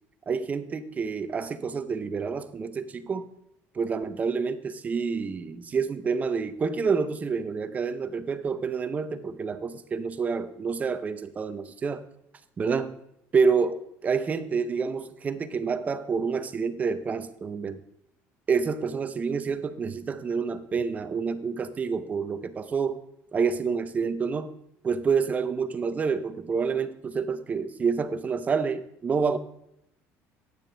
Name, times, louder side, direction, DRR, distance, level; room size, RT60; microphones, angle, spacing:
voice 1, 0.3-3.2 3.7-12.0 12.6-13.0 13.3-17.8 18.5-23.0 23.3-24.6 24.8-29.4, right 5 dB, 25° right, 12 dB, 0.6 m, -28 dB
12.5 x 9.3 x 3.3 m, 0.76 s
cardioid pair, 135°, 6 cm